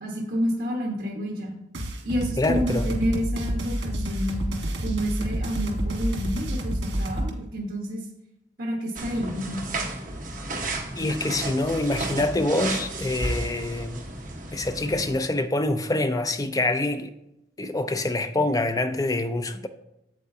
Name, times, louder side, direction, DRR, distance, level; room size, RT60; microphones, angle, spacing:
voice 1, 0.0-1.5 2.0-4.4 4.8-8.1 8.6-9.7, equal, 65° right, 1.1 m, -29 dB
sound 1, 1.7-7.3, right 1 dB, 90° right, 1.4 m, -29 dB
voice 2, 2.4-2.9 10.6-14.1 14.5-17.1 17.6-19.7, left 2 dB, 20° left, 0.4 m, -26 dB
sound 2, 9.0-15.2, right 2 dB, 45° right, 1.2 m, -33 dB
8.1 x 7.7 x 2.7 m
head